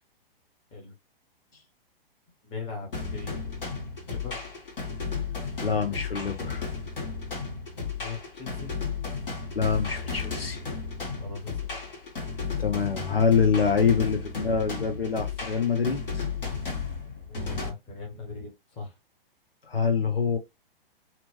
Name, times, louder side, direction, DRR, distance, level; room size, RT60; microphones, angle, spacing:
voice 1, 2.4-3.5 4.1-4.4 8.0-8.7 11.2-11.7 17.3-18.9, left 4 dB, 20° left, 0.8 m, -39 dB
sound 1, 2.9-17.7, left 5 dB, 65° left, 1.5 m, -34 dB
voice 2, 5.6-6.6 9.6-10.6 12.6-16.3 19.7-20.4, left 6 dB, 85° left, 0.8 m, -25 dB
2.8 x 2.0 x 2.9 m
figure-of-eight pair, 115°, 29 cm